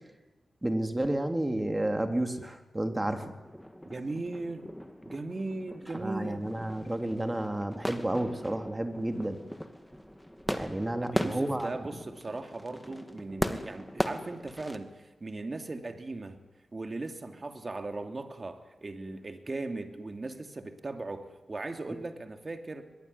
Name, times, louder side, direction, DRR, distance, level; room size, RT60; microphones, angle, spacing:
voice 1, 0.6-3.3 6.0-9.4 10.5-11.7, right 1 dB, 15° right, 6 dB, 3.3 m, -31 dB
sound 1, 3.4-14.8, equal, 5° left, 2.5 m, -38 dB
voice 2, 3.8-4.7 5.0-6.5 11.0-16.4 16.7-22.8, right 2 dB, 40° right, 6 dB, 3.0 m, -38 dB
23.0 x 22.0 x 9.9 m, 1.1 s
cardioid pair, 60°, 0 cm